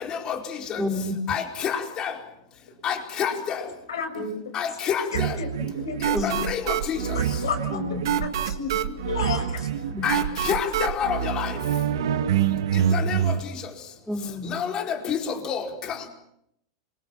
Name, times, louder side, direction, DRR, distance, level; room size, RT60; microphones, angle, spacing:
voice 1, 0.8-1.2 6.1-6.3 7.7-8.0 9.9-10.1 14.1-14.6, left 1 dB, ahead, 3 dB, 4.1 m, -29 dB
voice 2, 1.3-2.1 2.8-3.3 4.5-5.0 6.2-6.6 6.9-7.0 10.0-10.2 10.4-11.5 12.9-13.2 14.5-14.8 15.1-15.2 15.5-15.6, left 8 dB, 35° left, 4 dB, 4.7 m, -27 dB
voice 3, 3.9-4.3 5.1-6.5 6.9-9.7, left 4 dB, 90° left, 5 dB, 7.1 m, -32 dB
Dark Ruler, 5.1-13.4, right 9 dB, 80° right, 2.0 m, -26 dB
26.5 x 24.0 x 7.4 m, 0.75 s
hypercardioid pair, 120°, 2 cm